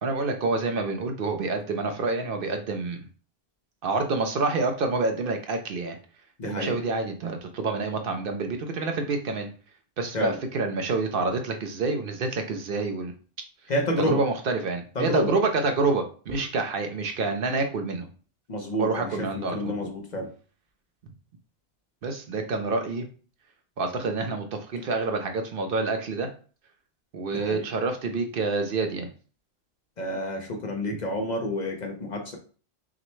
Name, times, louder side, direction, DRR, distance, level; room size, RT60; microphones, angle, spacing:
voice 1, 0.0-3.0 3.8-6.0 6.4-9.5 10.0-13.1 14.0-18.1 18.8-19.7 22.0-23.0 23.8-26.3 27.1-29.1, right 3 dB, 65° right, 5 dB, 0.8 m, -27 dB
voice 2, 6.4-6.8 10.1-10.4 13.7-14.2 15.0-15.3 18.5-20.3 27.3-27.6 30.0-32.4, equal, 50° left, 3 dB, 0.8 m, -29 dB
5.9 x 2.1 x 3.1 m, 0.39 s
omnidirectional pair, 1.1 m